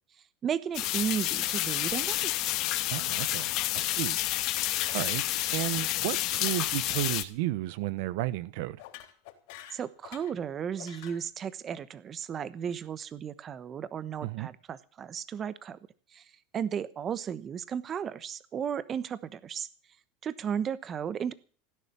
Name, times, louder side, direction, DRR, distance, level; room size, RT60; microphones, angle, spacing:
voice 1, 0.4-2.6 9.7-15.8 16.1-19.7 20.2-21.3, right 8 dB, 30° right, 1.1 m, -34 dB
sound 1, 0.7-7.2, left 15 dB, 50° left, 1.5 m, -29 dB
voice 2, 2.9-4.2 4.9-8.8 14.2-14.5, right 17 dB, 70° right, 1.0 m, -33 dB
sound 2, 4.8-5.3 5.6-6.0 6.4-6.7 7.0-7.2 8.8-10.4 10.7-11.2, left 13 dB, 65° left, 3.7 m, -49 dB
17.0 x 10.0 x 7.3 m
supercardioid pair, 135°, 0 cm